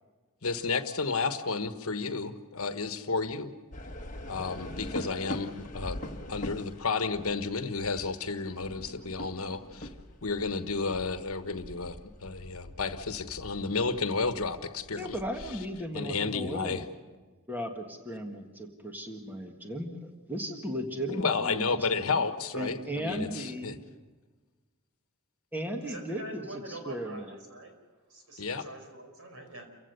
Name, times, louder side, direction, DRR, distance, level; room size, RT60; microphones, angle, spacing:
voice 1, 0.4-3.5 4.3-6.0 6.3-9.9 10.2-15.2 15.9-16.8 21.1-23.8 28.4-28.7, left 4 dB, 70° left, 9 dB, 1.2 m, -32 dB
sound 1, 3.7-15.8, left 1 dB, 35° left, 1.4 m, -43 dB
voice 2, 14.9-16.8 17.5-19.9 20.3-22.2 22.5-23.8 25.5-27.3, equal, 10° right, 3 dB, 1.6 m, -36 dB
voice 3, 25.8-27.8 28.1-29.7, right 1 dB, 70° right, 4 dB, 4.8 m, -45 dB
29.0 x 16.0 x 6.8 m, 1.3 s
head